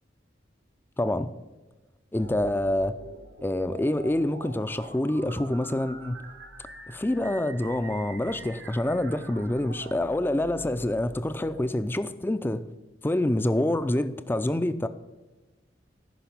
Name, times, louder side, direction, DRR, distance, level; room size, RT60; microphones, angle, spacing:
voice 1, 1.0-1.3 2.1-3.0 3.4-6.2 6.9-12.6 13.0-14.9, left 1 dB, 10° left, 12 dB, 0.4 m, -26 dB
sound 1, 2.2-11.7, right 3 dB, 85° right, 1.2 m, -45 dB
10.0 x 5.8 x 7.1 m, 1.2 s
head